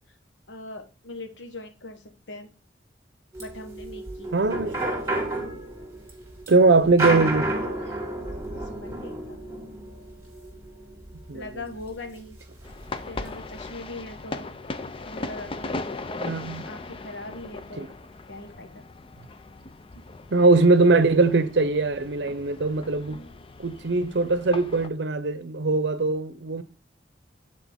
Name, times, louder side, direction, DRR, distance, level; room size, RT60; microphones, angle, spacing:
voice 1, 0.5-2.5 3.4-4.3 8.4-9.4 11.3-12.4 13.1-14.5 15.0-15.9 16.6-17.9 18.3-18.8 23.1-23.4, left 2 dB, 85° left, 1.3 m, -41 dB
sound 1, 3.3-11.9 12.3-12.4 12.6-13.2, right 1 dB, 15° right, 2.1 m, -31 dB
voice 2, 4.3-4.8 6.5-7.5 11.3-11.4 16.2-16.7 17.8-17.9 20.3-23.2 23.6-26.6, right 3 dB, 70° right, 0.7 m, -21 dB
sound 2, 12.6-24.9, left 3 dB, 30° left, 0.5 m, -38 dB
8.4 x 4.4 x 3.5 m
head